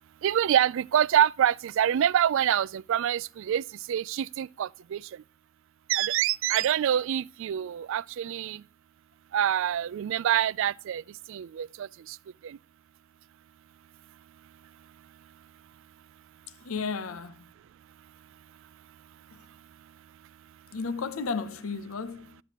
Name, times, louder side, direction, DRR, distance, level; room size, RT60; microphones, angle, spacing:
voice 1, 0.2-3.6 3.9-5.0 5.9-8.6 9.3-11.0 11.3-12.2 12.4-12.6, right 10 dB, 65° right, 0.3 m, -26 dB
voice 2, 16.6-17.5 20.7-22.4, left 4 dB, 80° left, 0.7 m, -33 dB
11.5 x 7.5 x 2.9 m
head